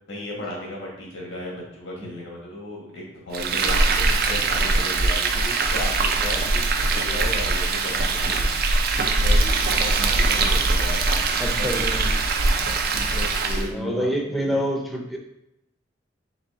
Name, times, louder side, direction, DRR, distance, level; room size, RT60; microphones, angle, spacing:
voice 1, 0.1-8.5 9.1-11.0 11.6-11.7 12.4-14.1 14.5-14.6, left 1 dB, 85° left, -3 dB, 1.6 m, -35 dB
Frying (food), 3.3-13.7, right 3 dB, 55° right, 0.5 m, -22 dB
voice 2, 11.4-12.1 13.7-15.2, equal, ahead, 1 dB, 0.6 m, -27 dB
4.1 x 3.1 x 3.7 m, 0.84 s
head